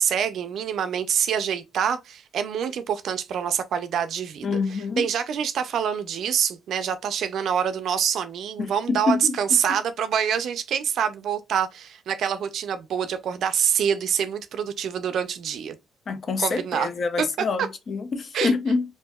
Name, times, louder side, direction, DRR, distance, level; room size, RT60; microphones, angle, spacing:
voice 1, 0.0-15.8 16.4-16.9 18.3-18.5, right 8 dB, 70° right, 0.3 m, -26 dB
voice 2, 4.4-5.1 8.6-9.4 16.1-18.8, left 4 dB, 50° left, 0.5 m, -26 dB
2.7 x 2.5 x 2.3 m
cardioid pair, 90°, 0 cm